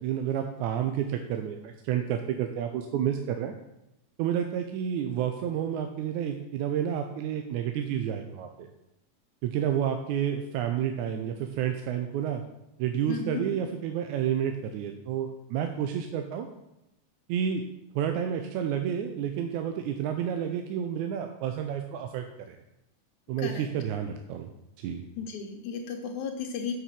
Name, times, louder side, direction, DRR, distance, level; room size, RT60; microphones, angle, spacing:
voice 1, 0.0-3.5 4.2-8.7 9.4-12.4 12.8-16.5 17.3-17.6 18.0-22.6 23.3-24.5 24.8-25.0, right 9 dB, 80° right, 5 dB, 2.0 m, -30 dB
voice 2, 13.1-13.5 23.4-23.7 25.2-26.7, left 6 dB, 80° left, 2 dB, 2.3 m, -34 dB
6.7 x 6.1 x 7.4 m, 0.86 s
omnidirectional pair, 3.5 m